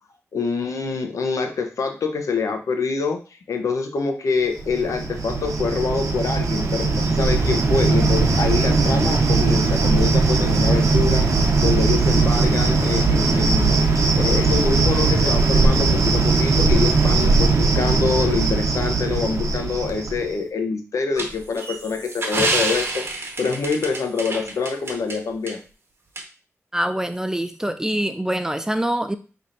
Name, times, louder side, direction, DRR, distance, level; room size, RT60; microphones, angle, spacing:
voice 1, 0.3-3.2 3.5-11.3 11.6-13.8 14.1-25.6, left 4 dB, 80° left, 5 dB, 0.7 m, -25 dB
Cricket, 4.6-20.3, right 3 dB, 85° right, 0.8 m, -19 dB
sound 1, 21.2-25.2 25.5-25.6 26.2-26.3, right 2 dB, 50° right, 1.0 m, -27 dB
voice 2, 26.7-29.2, right 1 dB, 10° right, 9 dB, 0.4 m, -24 dB
5.6 x 3.5 x 2.5 m, 0.35 s
cardioid pair, 70°, 5 cm